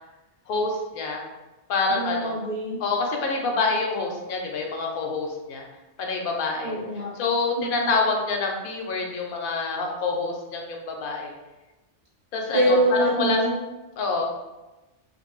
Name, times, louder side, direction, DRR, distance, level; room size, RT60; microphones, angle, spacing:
voice 1, 0.5-1.2 1.7-2.4 2.8-5.6 6.0-6.8 7.2-11.3 12.3-13.4 14.0-14.2, left 3 dB, 65° left, 1 dB, 0.7 m, -26 dB
voice 2, 1.9-2.8 6.6-7.1 7.6-7.9 12.5-13.6, right 1 dB, 30° right, -6 dB, 1.0 m, -24 dB
2.5 x 2.5 x 3.0 m, 1.1 s
omnidirectional pair, 1.1 m